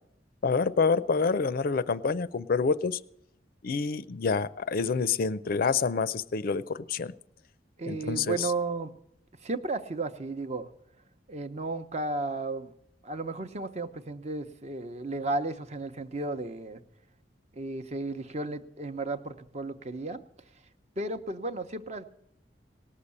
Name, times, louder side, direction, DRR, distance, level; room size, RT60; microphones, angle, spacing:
voice 1, 0.4-3.0 3.6-7.1 7.9-8.5, left 5 dB, 55° left, 16 dB, 0.5 m, -27 dB
voice 2, 7.8-8.9 9.4-10.7 11.3-12.7 13.0-16.8 17.5-20.2 21.0-22.0, right 2 dB, 40° right, 10 dB, 0.8 m, -34 dB
18.5 x 6.7 x 8.5 m, 0.75 s
head